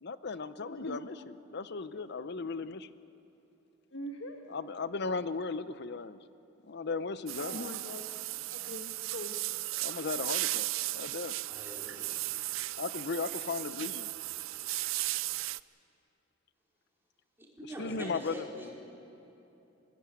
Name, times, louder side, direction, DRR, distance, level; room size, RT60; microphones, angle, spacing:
voice 1, 0.0-2.9 4.5-6.2 6.7-7.7 9.8-10.7 10.9-11.4 12.8-14.1 17.8-18.4, left 4 dB, 60° left, 14 dB, 0.7 m, -36 dB
voice 2, 0.6-1.2 3.9-4.4 7.4-8.1 8.5-9.4 18.6-18.7, left 1 dB, 80° left, 3 dB, 1.4 m, -42 dB
sound 1, 7.3-15.6, right 18 dB, 85° right, 0.4 m, -36 dB
voice 3, 11.5-12.4 17.4-18.7, equal, 10° right, -4 dB, 4.5 m, -44 dB
21.0 x 16.5 x 9.9 m, 3.0 s
head